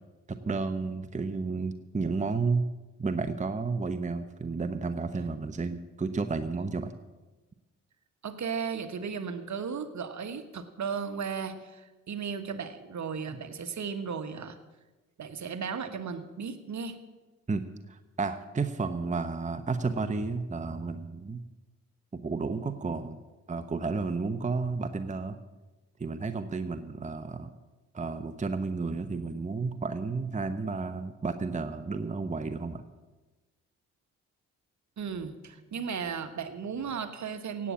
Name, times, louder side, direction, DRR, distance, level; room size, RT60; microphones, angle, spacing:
voice 1, 0.4-2.6 3.0-6.9 17.5-21.4 22.1-23.2 23.5-25.4 26.0-27.5 27.9-32.8, right 4 dB, 20° right, 9 dB, 1.0 m, -32 dB
voice 2, 8.2-14.6 15.2-17.0 35.0-37.7, right 6 dB, 50° right, 9 dB, 1.4 m, -35 dB
17.0 x 8.7 x 7.2 m, 1.2 s
hypercardioid pair, 45°, 38 cm